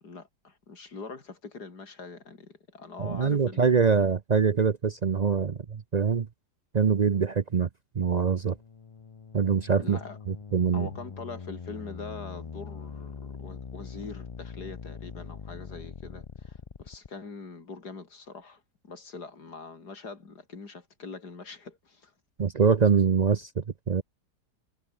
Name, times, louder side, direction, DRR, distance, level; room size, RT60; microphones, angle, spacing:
voice 1, 0.0-4.1 9.8-10.2 10.7-22.1, left 4 dB, 75° left, 3.7 m, -43 dB
voice 2, 3.0-6.3 6.7-7.7 8.0-8.6 9.3-10.0 10.3-10.9 22.4-24.0, right 6 dB, 60° right, 0.4 m, -24 dB
sound 1, 8.3-17.1, left 5 dB, 60° left, 0.3 m, -42 dB
omnidirectional pair, 1.7 m